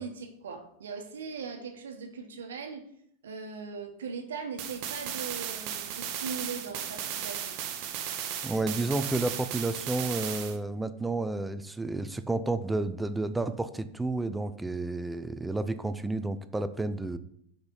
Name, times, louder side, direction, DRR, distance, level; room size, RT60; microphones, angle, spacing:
voice 1, 0.0-2.9 3.2-7.6, right 5 dB, 80° right, 4 dB, 1.2 m, -39 dB
sound 1, 4.6-10.6, right 9 dB, 55° right, 1.0 m, -36 dB
voice 2, 8.4-17.2, right 2 dB, 10° right, 11 dB, 0.6 m, -31 dB
6.0 x 5.1 x 5.4 m, 0.70 s
hypercardioid pair, 90°, 0 cm